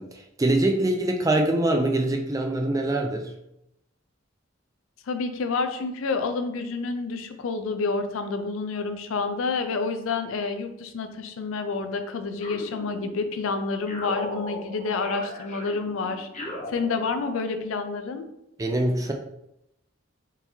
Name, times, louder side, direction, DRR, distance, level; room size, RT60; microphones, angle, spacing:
voice 1, 0.0-3.3 18.6-19.1, right 1 dB, 15° right, 3 dB, 0.3 m, -24 dB
voice 2, 5.1-16.3 16.7-18.3, left 4 dB, 80° left, 8 dB, 0.4 m, -29 dB
sound 1, 12.4-13.4 13.9-17.5, left 1 dB, 35° left, 0.7 m, -39 dB
3.7 x 2.7 x 3.0 m, 0.82 s
head